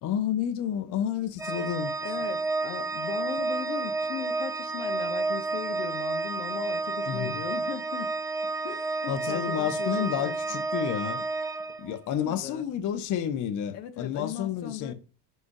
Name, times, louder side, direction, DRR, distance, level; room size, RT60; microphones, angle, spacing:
voice 1, 0.0-1.9 7.1-7.4 9.1-11.2 11.8-14.9, left 9 dB, 40° left, 0.6 m, -30 dB
Organ, 1.4-12.2, right 3 dB, 5° right, 0.6 m, -31 dB
voice 2, 2.0-8.2 8.4-10.3 12.2-12.7 13.7-14.9, left 9 dB, 75° left, 0.9 m, -38 dB
4.9 x 3.9 x 2.5 m
supercardioid pair, 85°, 48 cm